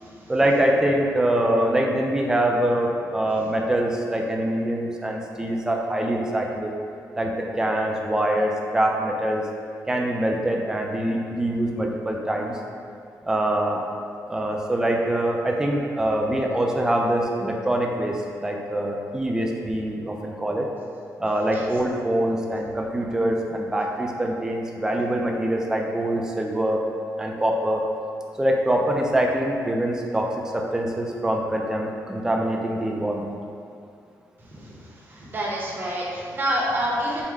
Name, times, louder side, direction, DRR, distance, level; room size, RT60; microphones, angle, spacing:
voice 1, 0.3-6.8 7.2-9.4 9.9-12.6 13.2-13.8 14.3-20.7 21.2-26.8 27.2-27.8 28.4-33.3, right 1 dB, 10° right, 0 dB, 0.3 m, -24 dB
voice 2, 35.1-37.2, equal, 30° right, -4 dB, 0.7 m, -27 dB
4.5 x 2.1 x 3.6 m, 2.4 s
wide cardioid pair, 160°, 6 cm